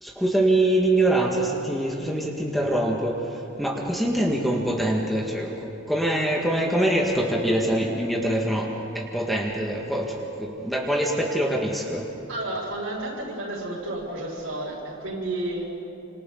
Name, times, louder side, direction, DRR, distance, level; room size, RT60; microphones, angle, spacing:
voice 1, 0.0-12.1, right 1 dB, ahead, -2 dB, 1.8 m, -24 dB
voice 2, 12.3-15.7, right 1 dB, 80° right, -2 dB, 6.8 m, -31 dB
30.0 x 26.5 x 4.0 m, 2.8 s
head